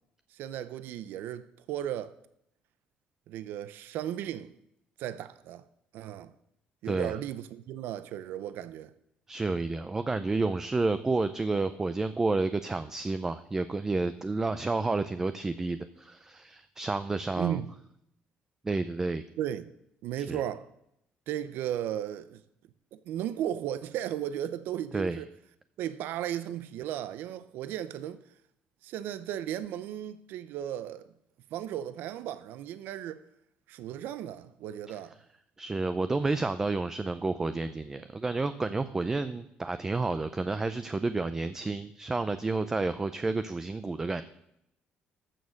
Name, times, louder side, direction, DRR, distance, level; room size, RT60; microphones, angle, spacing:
voice 1, 0.3-2.1 3.3-4.5 5.0-5.6 5.9-6.3 6.8-8.9 17.4-17.7 19.4-19.7 20.0-20.7 21.3-22.4 22.9-25.3 25.8-28.2 28.8-31.0 31.5-33.2 33.7-35.1, right 11 dB, 85° right, 0.6 m, -35 dB
voice 2, 9.3-17.6 18.6-19.3 20.3-20.4 24.9-25.2 35.6-44.2, right 3 dB, 15° right, 0.4 m, -30 dB
14.0 x 6.4 x 6.4 m
cardioid pair, 160°, 3 cm